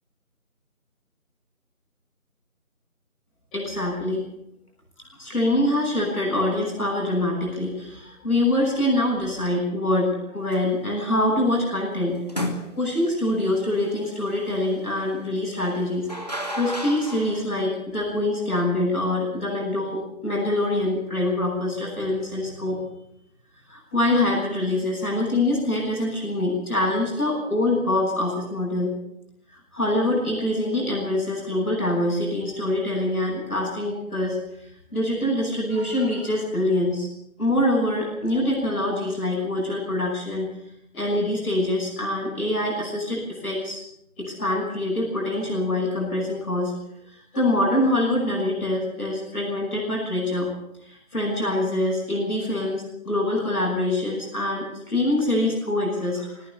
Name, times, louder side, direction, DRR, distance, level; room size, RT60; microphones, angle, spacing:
voice 1, 3.5-4.2 5.2-12.2 12.7-22.8 23.7-28.9 29.7-34.4 34.9-37.0 37.4-40.5 40.9-43.8 44.1-46.7 47.0-50.5 50.8-56.5, left 1 dB, ahead, -25 dB, 7.7 m, -25 dB
sound 1, 10.5-10.8 12.3-13.1 15.6-17.4, equal, 25° left, 2.3 m, -32 dB
24.5 x 18.0 x 7.7 m, 0.77 s
figure-of-eight pair, 175°, 44 cm